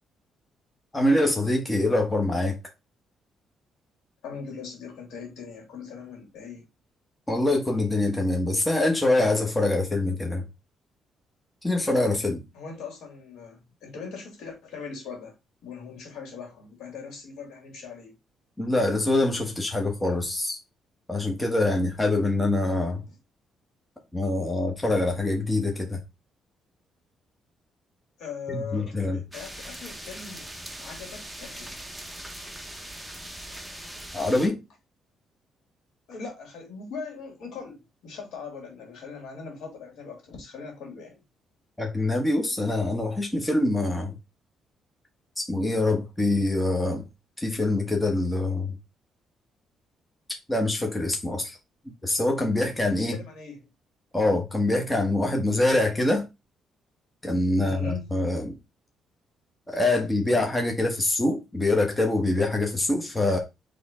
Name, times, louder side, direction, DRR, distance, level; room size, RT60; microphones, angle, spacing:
voice 1, 0.9-2.5 7.3-10.4 11.6-12.4 18.6-20.6 21.1-23.0 24.1-26.0 28.7-29.2 34.1-34.6 41.8-44.1 45.4-47.0 47.4-48.7 50.5-51.6 52.0-53.2 54.1-56.3 57.2-58.6 59.7-63.4, left 2 dB, 15° left, 1.2 m, -24 dB
voice 2, 4.2-6.6 12.5-15.3 15.6-18.1 23.1-23.2 28.2-30.5 30.8-31.8 36.1-41.2 52.9-53.7 57.6-58.1, left 5 dB, 80° left, 2.4 m, -40 dB
sound 1, 29.3-34.5, right 1 dB, 5° right, 0.9 m, -41 dB
4.3 x 3.3 x 3.7 m
cardioid pair, 90°, 0 cm